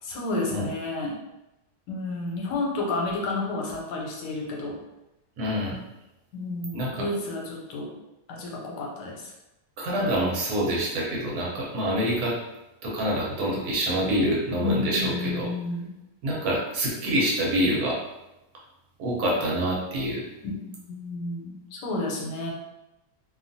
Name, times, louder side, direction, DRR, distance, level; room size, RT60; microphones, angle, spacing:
voice 1, 0.0-1.1 1.9-4.8 6.3-7.9 8.3-9.3 14.6-15.9 20.4-22.5, left 2 dB, 85° left, -1 dB, 1.3 m, -31 dB
voice 2, 5.4-5.8 6.7-7.1 9.8-12.3 12.8-15.5 16.2-18.0 19.0-20.2, equal, 70° right, -4 dB, 1.2 m, -26 dB
2.8 x 2.4 x 2.5 m, 0.96 s
omnidirectional pair, 1.8 m